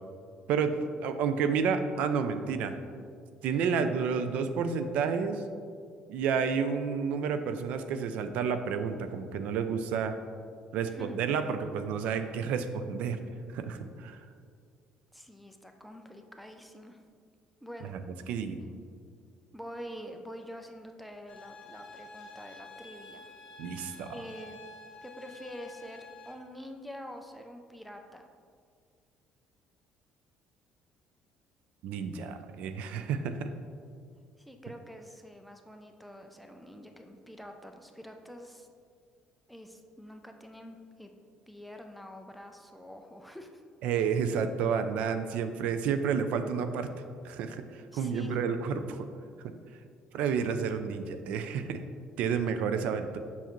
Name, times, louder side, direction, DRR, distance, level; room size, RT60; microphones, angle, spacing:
voice 1, 0.5-2.8 3.4-5.4 6.1-10.1 10.7-13.2 13.5-14.2 17.9-18.0 18.3-18.6 23.6-24.2 31.8-33.5 43.8-46.9 47.2-49.1 50.1-51.8 52.2-53.2, right 6 dB, 70° right, 9 dB, 0.4 m, -30 dB
voice 2, 10.9-11.2 15.1-17.0 17.6-17.9 19.5-23.3 24.1-24.6 25.0-28.3 34.4-38.7 39.5-41.1 41.5-43.6 47.9-48.4, equal, ahead, 4 dB, 0.4 m, -46 dB
sound 1, 21.3-26.3, left 3 dB, 40° left, 1.1 m, -49 dB
7.0 x 5.4 x 3.0 m, 2.1 s
cardioid pair, 165°, 2 cm